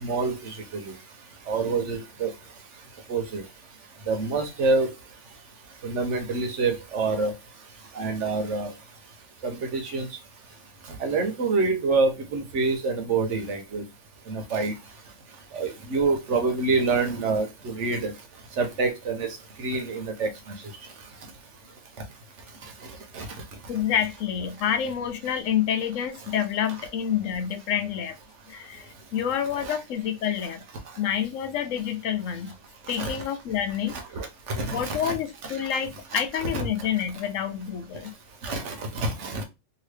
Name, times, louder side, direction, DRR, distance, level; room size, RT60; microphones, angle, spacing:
voice 1, 0.0-0.9 1.5-2.3 3.1-3.4 4.1-4.9 5.8-7.3 7.9-8.7 9.4-10.1 11.0-13.8 14.3-14.7 15.5-18.1 18.6-19.3 19.6-20.3 23.1-23.2 29.6-29.8 33.0-33.2 33.9-35.1 35.4-35.6 36.1-36.2 36.5-36.7 38.4-39.4, right 3 dB, 70° right, 1.1 m, -26 dB
voice 2, 23.7-28.2 28.5-30.6 31.0-32.5 32.9-34.0 34.7-38.1, left 9 dB, 85° left, 1.0 m, -28 dB
2.8 x 2.8 x 3.2 m
omnidirectional pair, 1.3 m